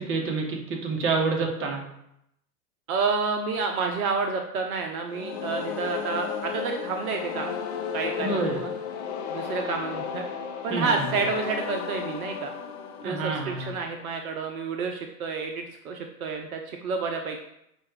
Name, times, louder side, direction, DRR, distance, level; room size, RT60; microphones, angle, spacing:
voice 1, 0.0-1.8 8.2-8.6 10.7-11.0 13.0-13.7, right 4 dB, 25° right, 0 dB, 0.9 m, -28 dB
voice 2, 2.9-7.6 7.9-8.7 9.3-10.3 10.6-12.5 13.0-17.5, right 4 dB, 65° right, 3 dB, 0.7 m, -29 dB
sound 1, 5.1-14.0, left 7 dB, 45° left, 0.6 m, -34 dB
5.6 x 2.4 x 3.2 m, 0.79 s
hypercardioid pair, 105°, 47 cm